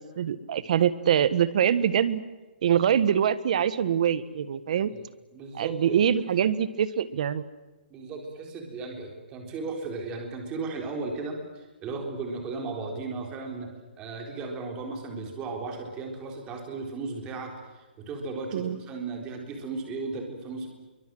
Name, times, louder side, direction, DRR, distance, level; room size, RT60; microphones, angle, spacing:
voice 1, 0.0-2.2 2.6-4.9 5.5-7.4 18.5-18.8, right 9 dB, 45° right, 15 dB, 1.5 m, -24 dB
voice 2, 5.3-6.0 7.9-13.7 14.0-20.7, right 3 dB, 15° right, 2 dB, 4.0 m, -35 dB
27.5 x 23.5 x 7.8 m, 1.2 s
hypercardioid pair, 170°, 6 cm